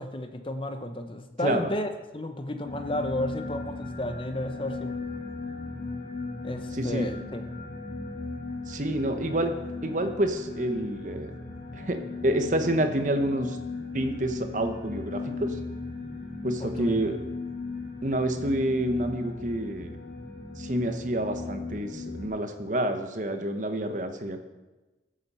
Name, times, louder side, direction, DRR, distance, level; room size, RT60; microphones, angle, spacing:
voice 1, 0.0-5.0 6.4-7.4 16.6-16.9, left 1 dB, 30° left, 7 dB, 0.9 m, -32 dB
sound 1, 2.6-22.3, left 3 dB, 45° left, 2.5 m, -37 dB
voice 2, 6.7-7.1 8.7-9.5 9.8-11.3 11.7-13.6 13.9-15.6 16.4-17.2 18.0-20.0 20.6-24.4, right 1 dB, 45° right, 7 dB, 1.0 m, -28 dB
14.0 x 7.5 x 5.6 m, 1.1 s
head